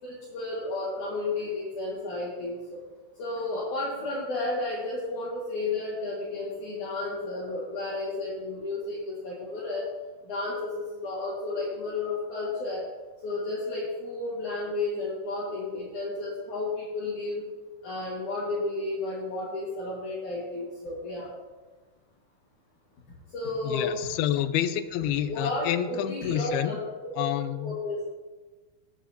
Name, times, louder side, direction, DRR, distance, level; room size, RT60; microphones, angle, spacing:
voice 1, 0.0-2.8 3.2-9.8 10.2-12.9 13.2-17.5 17.8-21.3 23.3-24.0 25.0-26.8 27.6-28.1, left 2 dB, 55° left, -7 dB, 3.2 m, -32 dB
voice 2, 23.6-26.7 27.2-27.8, left 11 dB, 90° left, 12 dB, 2.5 m, -28 dB
19.0 x 8.3 x 2.9 m, 1.3 s
omnidirectional pair, 4.4 m